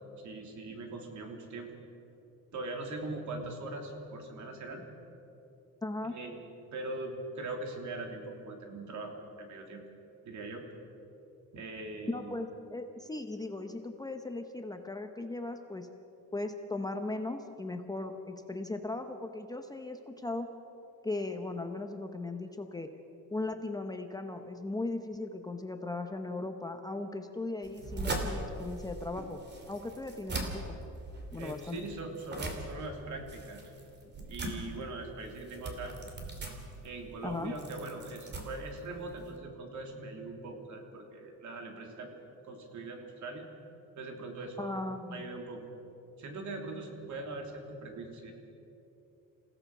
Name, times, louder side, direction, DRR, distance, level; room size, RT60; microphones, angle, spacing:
voice 1, 0.2-1.8 2.5-4.9 6.1-9.8 10.2-10.6 11.5-12.4 31.3-33.6 34.2-35.9 36.8-42.2 42.4-43.5 44.0-44.7 45.1-45.6 46.2-48.3, right 2 dB, 55° right, 3 dB, 3.2 m, -41 dB
voice 2, 5.8-6.2 12.1-15.9 16.3-20.5 21.0-22.9 23.3-29.4 29.7-30.8 31.3-31.8 37.2-37.5 44.6-45.2, left 2 dB, 10° left, 5 dB, 0.8 m, -37 dB
sound 1, 27.6-39.4, right 2 dB, 30° right, 2.8 m, -41 dB
28.0 x 16.5 x 6.0 m, 2.9 s
cardioid pair, 155°, 35 cm